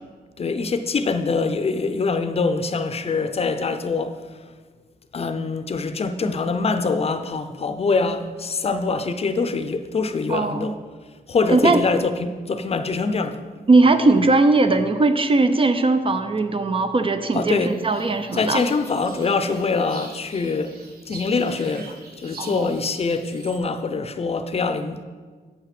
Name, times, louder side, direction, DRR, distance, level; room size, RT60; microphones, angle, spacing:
voice 1, 0.4-4.2 5.1-10.8 11.3-13.4 17.3-17.8 18.3-20.8 21.1-25.0, left 4 dB, 40° left, 0.6 m, -24 dB
voice 2, 10.3-10.7 11.5-11.8 13.7-18.6 22.4-22.7, right 3 dB, 35° right, 0.5 m, -19 dB
sound 1, 17.6-23.6, right 3 dB, 75° right, 1.6 m, -44 dB
8.1 x 5.8 x 5.9 m
wide cardioid pair, 110°, 16 cm